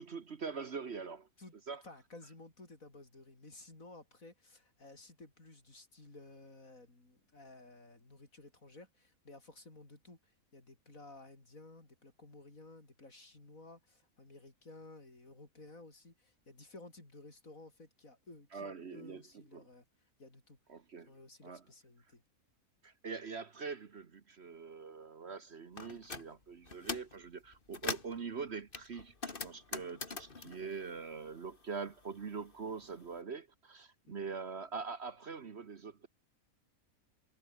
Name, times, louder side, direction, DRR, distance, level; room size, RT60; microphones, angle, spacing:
voice 1, 0.0-1.3 1.7-1.8 18.5-19.2 19.5-19.7 20.7-21.1 21.4-21.6 22.8-36.1, right 5 dB, 50° right, 1.4 m, -43 dB
voice 2, 1.8-19.9 20.2-20.6 21.0-22.2 34.1-34.3, left 2 dB, 65° left, 5.6 m, -55 dB
sound 1, 25.8-26.3 26.7-27.2 27.5-28.2 28.7-31.7 31.9-33.1, left 4 dB, 35° left, 2.1 m, -42 dB
omnidirectional pair, 1.5 m